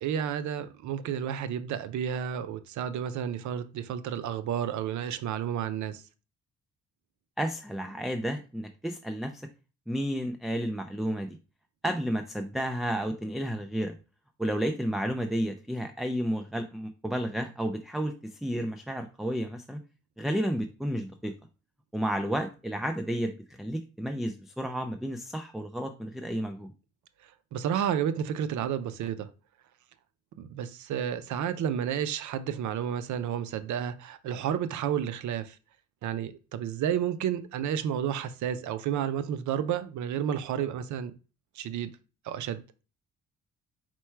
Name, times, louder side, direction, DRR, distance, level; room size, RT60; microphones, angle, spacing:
voice 1, 0.0-6.0 27.5-29.3 30.4-35.6 36.0-41.1 41.6-41.9 42.2-42.6, right 9 dB, 70° right, 0.6 m, -31 dB
voice 2, 7.4-9.5 9.9-11.4 11.8-13.9 14.4-19.8 20.2-21.3 21.9-26.7, equal, ahead, 0.4 m, -31 dB
4.4 x 2.2 x 4.4 m
cardioid pair, 90°, 30 cm